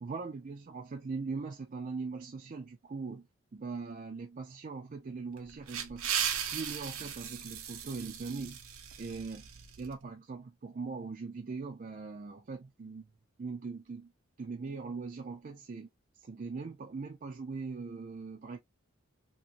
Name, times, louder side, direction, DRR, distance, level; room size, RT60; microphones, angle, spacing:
voice 1, 0.0-3.3 3.5-6.1 6.5-8.6 9.0-9.4 9.8-13.1 13.4-14.1 14.4-15.9 16.2-18.6, right 4 dB, 40° right, 0.4 m, -40 dB
sound 1, 5.4-9.9, right 8 dB, 85° right, 0.7 m, -37 dB
2.9 x 2.6 x 2.5 m
head